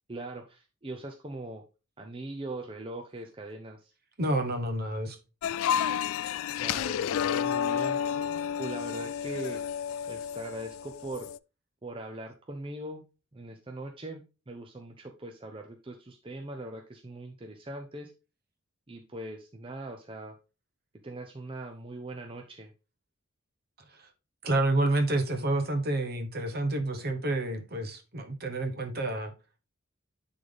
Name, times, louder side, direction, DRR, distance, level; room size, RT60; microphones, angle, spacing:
voice 1, 0.1-1.6 2.0-3.9 6.6-8.0 8.6-9.6 10.1-11.3 11.8-13.0 13.3-18.1 18.9-20.4 21.0-22.7, right 1 dB, 25° right, 0.6 m, -41 dB
voice 2, 4.2-5.2 24.4-29.3, right 2 dB, 45° right, 1.1 m, -29 dB
sound 1, 5.4-11.4, left 8 dB, 75° left, 0.3 m, -31 dB
9.9 x 4.0 x 3.4 m
head